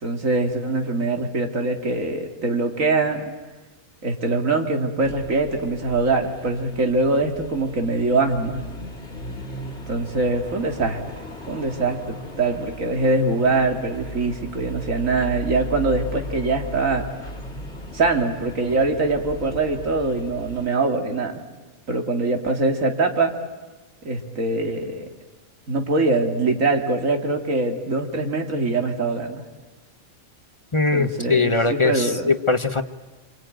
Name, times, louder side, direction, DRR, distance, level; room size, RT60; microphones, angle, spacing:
voice 1, 0.0-3.3 4.0-8.6 9.9-11.0 11.5-17.0 17.9-21.4 21.9-23.3 24.0-25.1 25.7-29.4 30.9-32.3, right 3 dB, 65° right, 4 dB, 2.6 m, -23 dB
sound 1, 5.0-20.7, equal, 50° left, 3.0 m, -37 dB
voice 2, 30.7-32.8, left 3 dB, 25° left, 8 dB, 0.8 m, -21 dB
27.0 x 24.5 x 9.2 m, 1.2 s
omnidirectional pair, 1.5 m